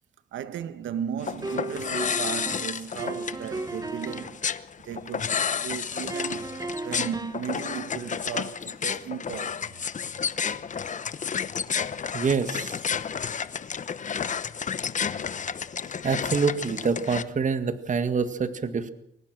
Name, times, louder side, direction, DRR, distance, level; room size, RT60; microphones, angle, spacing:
voice 1, 0.3-9.7, right 8 dB, 75° right, 1.5 m, -36 dB
sound 1, 1.2-17.2, left 7 dB, 40° left, 1.0 m, -31 dB
sound 2, 1.4-4.4 6.1-7.5, right 2 dB, 20° right, 1.6 m, -35 dB
voice 2, 12.1-12.8 16.0-18.9, right 5 dB, 40° right, 1.8 m, -26 dB
23.0 x 19.5 x 6.3 m
cardioid pair, 90°, 20 cm